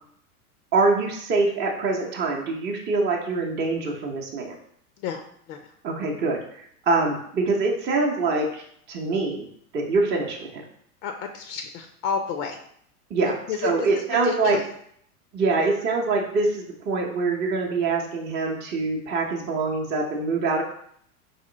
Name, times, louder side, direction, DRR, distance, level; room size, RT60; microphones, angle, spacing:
voice 1, 0.7-4.6 5.8-9.5 9.7-10.6 13.1-13.3 13.6-14.6 15.3-20.6, right 3 dB, 25° right, -1 dB, 0.7 m, -24 dB
voice 2, 5.0-5.7 11.0-12.6 13.5-13.7 14.1-14.6, left 7 dB, 50° left, 5 dB, 0.6 m, -30 dB
4.2 x 2.9 x 3.8 m, 0.67 s
hypercardioid pair, 110°, 46 cm